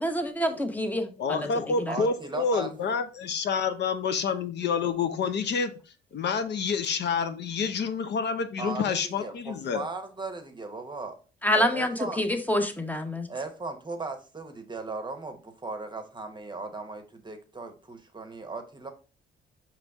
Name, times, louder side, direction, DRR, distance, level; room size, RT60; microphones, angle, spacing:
voice 1, 0.0-1.5 1.9-2.0 11.4-13.3, left 1 dB, 10° left, 6 dB, 0.7 m, -27 dB
voice 2, 1.2-5.7 6.1-9.9, left 5 dB, 60° left, 9 dB, 0.6 m, -28 dB
voice 3, 1.9-2.7 8.6-11.2 11.5-12.2 13.3-18.9, right 3 dB, 20° right, 7 dB, 0.8 m, -37 dB
5.0 x 3.1 x 3.4 m, 0.35 s
cardioid pair, 90°, 20 cm